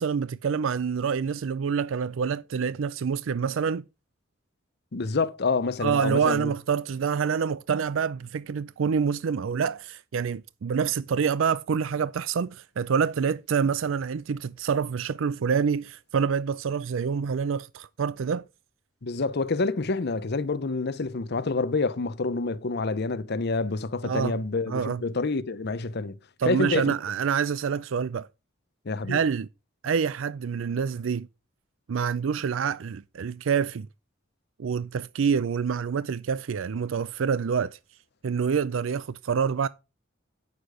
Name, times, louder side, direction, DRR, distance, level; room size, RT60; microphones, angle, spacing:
voice 1, 0.0-3.9 5.8-18.4 24.0-24.4 24.7-25.0 26.4-28.3 29.1-29.5 29.8-31.3 31.9-33.9 34.6-37.8 38.2-39.7, right 6 dB, 80° right, 0.4 m, -27 dB
voice 2, 4.9-6.5 19.0-26.2 26.4-26.9 28.8-29.2, left 3 dB, 55° left, 0.8 m, -27 dB
9.4 x 6.6 x 4.9 m
head